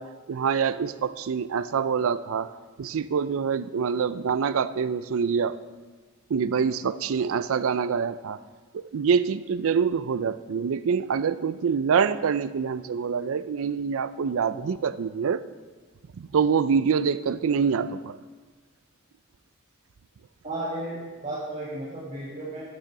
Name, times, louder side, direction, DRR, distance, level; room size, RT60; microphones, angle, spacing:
voice 1, 0.0-5.6 6.3-8.4 8.7-15.4 16.1-18.2, right 6 dB, 65° right, 15 dB, 0.4 m, -25 dB
voice 2, 20.4-22.6, right 1 dB, 35° right, -8 dB, 1.9 m, -34 dB
9.7 x 6.7 x 5.9 m, 1.4 s
head